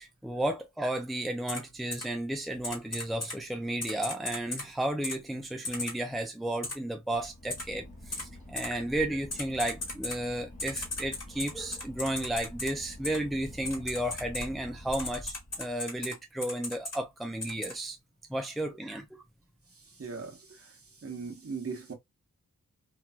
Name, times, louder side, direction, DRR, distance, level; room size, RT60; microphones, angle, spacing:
voice 1, 0.0-18.0 18.3-19.1, right 1 dB, ahead, 0.6 m, -33 dB
Typing, 1.5-1.6 1.9-2.0 2.6-3.3 3.8-4.6 5.0-5.2 5.6-5.9 6.6-6.7 7.5-7.6 8.1-8.2 8.6-8.7 9.3-10.2 10.6-12.7 13.0-13.2 13.6-14.4 14.9-16.1 16.4-17.0 17.4-17.7, left 2 dB, 55° left, 1.6 m, -36 dB
Boat Water vehicle / Engine, 7.0-16.0, left 1 dB, 25° left, 1.2 m, -47 dB
voice 2, 20.0-20.7 21.0-21.9, right 5 dB, 45° right, 1.1 m, -39 dB
3.0 x 2.5 x 2.2 m
wide cardioid pair, 80°, 31 cm